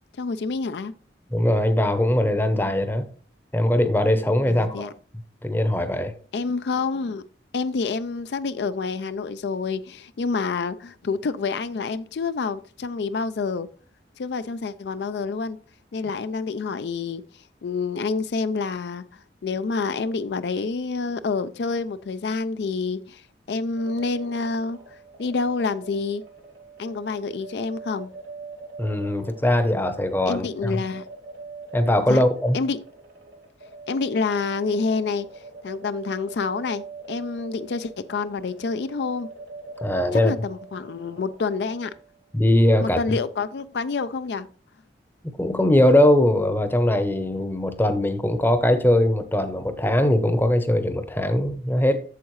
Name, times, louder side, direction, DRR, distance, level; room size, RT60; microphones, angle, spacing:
voice 1, 0.2-0.9 4.5-4.9 6.3-7.2 7.5-13.7 14.2-15.6 15.9-17.2 17.6-23.2 23.5-24.8 25.2-26.2 26.8-28.1 30.3-31.0 32.1-32.2 32.5-32.8 33.9-35.3 35.6-39.3 40.1-41.9 42.8-44.5, left 4 dB, 75° left, 0.4 m, -28 dB
voice 2, 1.3-3.1 3.5-4.9 5.4-6.1 28.8-30.7 31.7-32.6 39.8-40.3 42.3-43.2 45.4-52.0, left 1 dB, 10° left, 0.7 m, -21 dB
sound 1, 23.8-42.2, right 4 dB, 85° right, 1.9 m, -43 dB
8.3 x 7.2 x 3.1 m
head